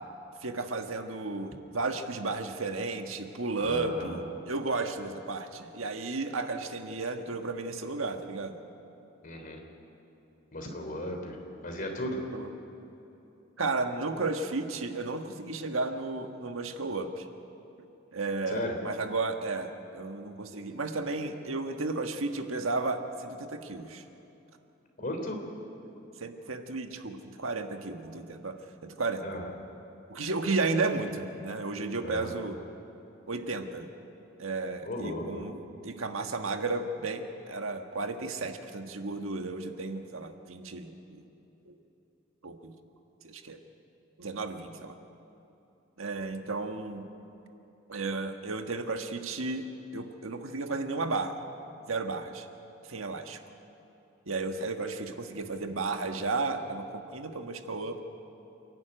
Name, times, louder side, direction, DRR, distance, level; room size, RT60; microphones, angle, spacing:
voice 1, 0.4-8.6 12.3-12.5 13.6-17.3 17.8-17.9 18.1-24.0 26.2-28.6 28.8-29.3 30.1-32.6 33.3-33.9 34.4-41.2 41.6-41.7 42.4-42.7 43.2-43.6 44.2-45.0 46.0-47.0 47.9-51.4 51.9-52.5 52.9-53.4 54.3-58.0, right 3 dB, 85° right, 6 dB, 1.5 m, -33 dB
voice 2, 3.6-4.2 9.2-9.6 10.5-11.4 11.6-12.2 18.5-18.7 25.0-25.4 29.2-29.4 32.0-32.3 34.8-35.4, left 1 dB, 45° left, 3 dB, 3.3 m, -35 dB
28.5 x 11.5 x 9.0 m, 3.0 s
head